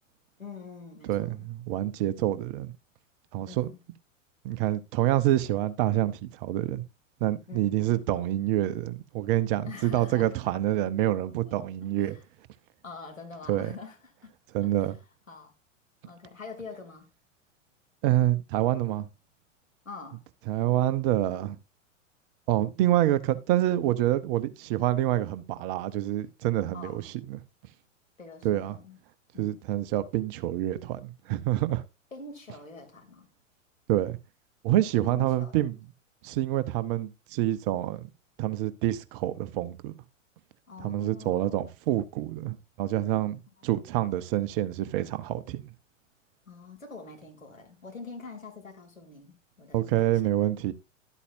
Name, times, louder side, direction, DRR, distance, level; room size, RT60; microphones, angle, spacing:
voice 1, 0.4-1.5 3.5-3.8 7.5-8.0 9.7-10.4 11.8-12.2 12.8-14.3 14.6-15.0 15.3-15.5 16.0-17.1 19.8-20.2 26.7-27.1 28.2-29.0 29.3-29.6 32.1-33.2 35.0-35.5 36.2-36.4 40.7-41.7 43.6-43.7 46.4-50.3, left 4 dB, 90° left, 3.0 m, -45 dB
voice 2, 1.1-2.7 3.3-3.7 4.4-6.8 7.2-12.1 13.5-13.7 14.5-14.9 18.0-19.1 20.5-21.6 22.5-27.4 28.4-28.8 29.4-31.8 33.9-34.2 34.6-35.7 36.2-38.1 38.4-40.0 40.8-45.7 49.7-50.7, right 13 dB, 45° right, 0.9 m, -27 dB
12.0 x 8.4 x 2.6 m
figure-of-eight pair, 100°, 39 cm